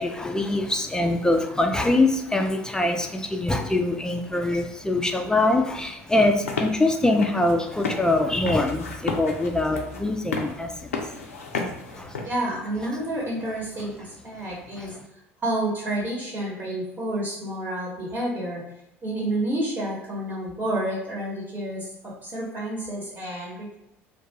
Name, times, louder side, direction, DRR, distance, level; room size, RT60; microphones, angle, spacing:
voice 1, 0.0-11.0 11.5-12.1 14.8-14.9, left 2 dB, 10° left, 4 dB, 0.3 m, -24 dB
sound 1, 6.3-12.3, left 4 dB, 85° left, 0.4 m, -33 dB
voice 2, 12.2-15.0 15.4-18.6 19.0-23.7, right 1 dB, 30° right, -5 dB, 1.0 m, -29 dB
2.3 x 2.2 x 2.8 m, 0.89 s
hypercardioid pair, 65°, 7 cm